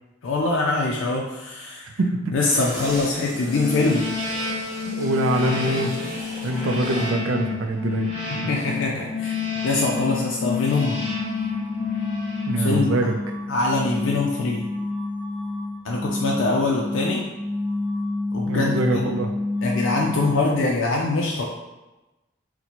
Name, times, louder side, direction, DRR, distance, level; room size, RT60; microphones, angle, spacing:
voice 1, 0.2-1.9 2.3-4.1 8.3-9.4 9.6-11.0 12.6-13.0 13.5-14.6 15.8-17.2 18.3-19.1 19.6-21.4, left 3 dB, 75° left, -2 dB, 0.4 m, -23 dB
voice 2, 1.8-2.3 4.9-6.0 6.4-8.1 12.5-13.2 18.5-19.3, right 2 dB, 80° right, 5 dB, 0.4 m, -24 dB
sound 1, 2.5-7.2 7.6-7.7, equal, 15° right, 1.1 m, -37 dB
sound 2, 3.3-13.3, left 5 dB, 35° left, 0.8 m, -29 dB
sound 3, 10.9-20.6, left 2 dB, 5° left, 0.9 m, -29 dB
4.1 x 2.1 x 2.9 m, 1.0 s
head